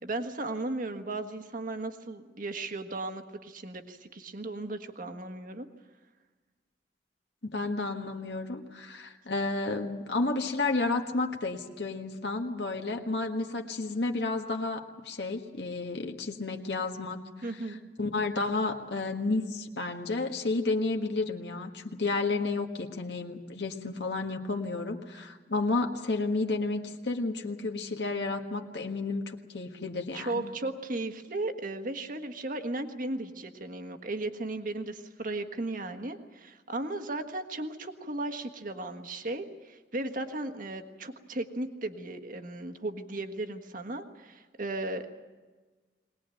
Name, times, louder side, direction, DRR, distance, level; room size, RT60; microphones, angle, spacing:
voice 1, 0.0-5.7 17.4-17.8 30.1-45.1, right 2 dB, 50° right, 7 dB, 1.6 m, -36 dB
voice 2, 7.4-17.5 18.0-30.5, left 3 dB, 70° left, 3 dB, 1.6 m, -31 dB
21.5 x 19.5 x 9.1 m, 1.3 s
head